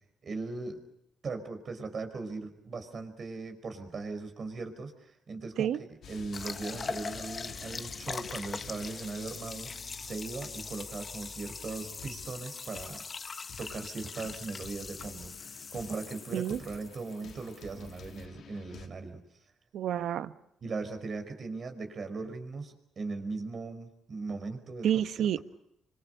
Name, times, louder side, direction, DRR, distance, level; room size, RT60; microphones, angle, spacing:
voice 1, 0.2-0.8 1.2-5.7 6.1-13.0 13.6-19.2 20.6-24.9, right 3 dB, 45° right, 8 dB, 5.1 m, -39 dB
sound 1, 6.0-12.4 12.7-13.1 13.5-13.9 14.2-18.9, left 5 dB, 65° left, 2.9 m, -50 dB
sound 2, 6.3-18.2, left 5 dB, 35° left, 1.2 m, -42 dB
voice 2, 19.7-20.3 24.8-25.4, right 10 dB, 75° right, 12 dB, 1.1 m, -29 dB
28.0 x 25.0 x 6.7 m, 0.80 s
cardioid pair, 90°, 0 cm